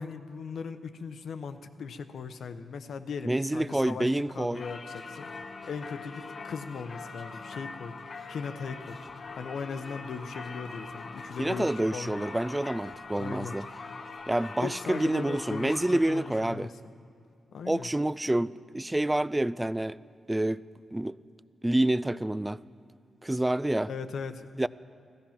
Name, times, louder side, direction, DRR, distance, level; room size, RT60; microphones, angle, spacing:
voice 1, 0.0-8.0 8.3-9.0 9.3-12.3 13.1-13.6 14.6-15.8 16.1-16.7 17.5-17.9 23.8-24.7, left 5 dB, 75° left, 0.8 m, -38 dB
voice 2, 3.3-4.6 11.4-13.7 14.3-16.7 17.7-20.0 20.3-20.6 20.9-21.2 21.6-22.6 23.2-23.9 24.6-24.7, right 1 dB, 10° right, 0.3 m, -28 dB
Singing / Church bell, 4.5-16.5, left 4 dB, 50° left, 0.9 m, -43 dB
15.5 x 14.5 x 5.9 m
cardioid pair, 95°, 0 cm